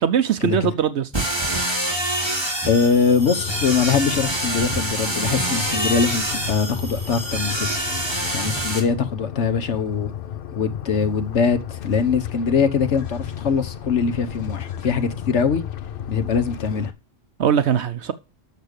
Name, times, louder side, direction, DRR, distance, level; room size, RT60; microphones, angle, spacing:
voice 1, 0.0-1.1 17.4-18.1, right 8 dB, 75° right, 1.0 m, -20 dB
sound 1, 1.1-8.8, right 1 dB, 20° right, 2.6 m, -26 dB
voice 2, 2.7-7.7 8.3-10.1 10.5-15.6 16.1-16.9, left 5 dB, 80° left, 1.4 m, -22 dB
sound 2, 3.2-16.9, left 9 dB, 55° left, 0.8 m, -33 dB
8.1 x 6.7 x 6.6 m
omnidirectional pair, 1.2 m